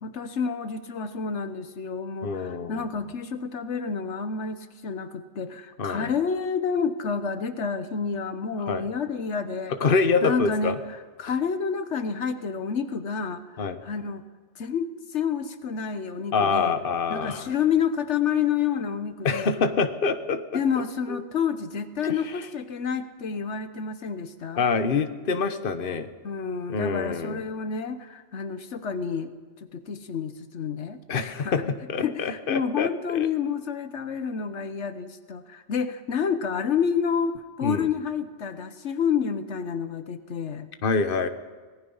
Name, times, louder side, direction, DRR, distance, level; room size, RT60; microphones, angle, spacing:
voice 1, 0.0-9.7 10.2-10.8 11.2-14.2 14.6-16.7 17.1-19.5 20.5-24.7 26.2-29.3 29.7-31.0 31.4-31.7 32.0-40.7, left 6 dB, 80° left, 10 dB, 1.3 m, -29 dB
voice 2, 2.2-2.9 5.8-6.1 8.6-8.9 9.8-10.7 13.6-13.8 16.3-17.5 19.2-20.6 21.1-21.2 22.0-22.1 24.6-26.1 26.7-27.4 31.1-31.6 31.9-33.3 37.6-37.9 40.8-41.3, left 4 dB, 50° left, 9 dB, 1.2 m, -26 dB
25.5 x 18.5 x 5.6 m, 1.4 s
omnidirectional pair, 1.2 m